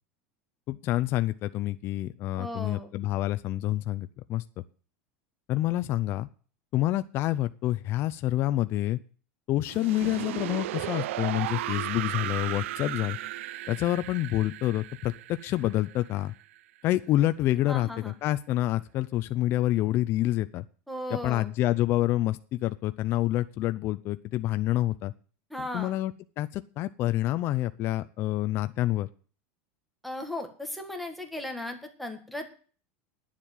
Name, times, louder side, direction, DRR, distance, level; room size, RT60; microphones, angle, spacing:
voice 1, 0.7-4.4 5.5-6.3 6.7-9.0 9.5-13.2 13.7-16.3 16.8-20.6 21.1-25.1 25.7-29.1, left 15 dB, 35° left, 11 dB, 0.5 m, -27 dB
voice 2, 2.4-2.9 17.7-18.1 20.9-21.5 25.5-26.0 30.0-32.5, left 1 dB, ahead, 4 dB, 1.7 m, -36 dB
sound 1, 9.7-16.6, right 14 dB, 85° right, 0.6 m, -35 dB
10.0 x 7.4 x 9.0 m, 0.40 s
supercardioid pair, 160°, 7 cm